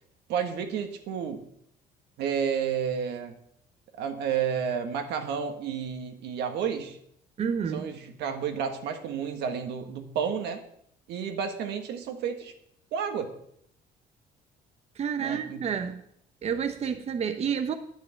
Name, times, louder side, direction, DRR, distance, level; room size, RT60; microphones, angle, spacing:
voice 1, 0.3-1.4 2.2-3.4 4.0-7.0 7.7-10.6 11.1-12.5 12.9-13.3 15.2-15.6, right 7 dB, 80° right, 6 dB, 1.6 m, -31 dB
voice 2, 7.4-7.9 15.0-16.0 16.4-17.8, right 7 dB, 40° right, 9 dB, 0.8 m, -29 dB
9.9 x 5.5 x 8.2 m, 0.72 s
cardioid pair, 110°, 17 cm